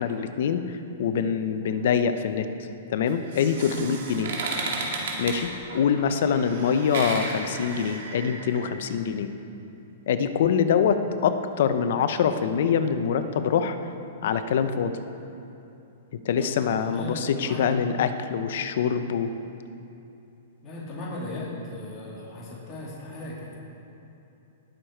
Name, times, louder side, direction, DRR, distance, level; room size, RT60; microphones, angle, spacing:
voice 1, 0.0-2.5 2.9-4.3 5.2-9.3 10.1-13.8 14.2-15.0 16.2-19.3, left 7 dB, 65° left, 10 dB, 0.7 m, -24 dB
sound 1, 3.1-8.7, right 3 dB, 65° right, 2.2 m, -34 dB
voice 2, 16.3-17.7 20.6-23.6, left 2 dB, 25° left, -6 dB, 2.6 m, -37 dB
19.5 x 6.6 x 4.5 m, 2.9 s
hypercardioid pair, 145°, 0 cm